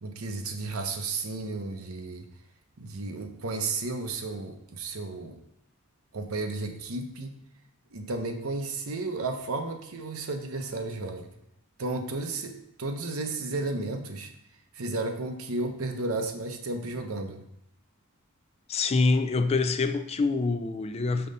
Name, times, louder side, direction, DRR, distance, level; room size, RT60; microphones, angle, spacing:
voice 1, 0.0-2.3 2.8-5.4 6.1-7.3 7.9-11.3 11.8-14.3 14.7-17.5, right 3 dB, 75° right, 0.8 m, -33 dB
voice 2, 18.7-21.3, left 3 dB, 30° left, 0.3 m, -25 dB
5.7 x 3.9 x 5.3 m
head